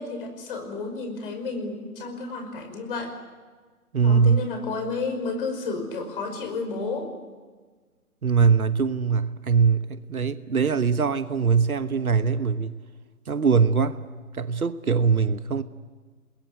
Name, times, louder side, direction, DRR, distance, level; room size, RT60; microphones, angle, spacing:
voice 1, 0.0-3.2 4.0-7.1, left 3 dB, 35° left, 5 dB, 5.4 m, -31 dB
voice 2, 3.9-4.4 8.2-12.8 13.3-14.0 14.3-15.6, right 5 dB, 70° right, 12 dB, 1.3 m, -22 dB
28.0 x 21.0 x 8.2 m, 1.4 s
figure-of-eight pair, 145°, 45 cm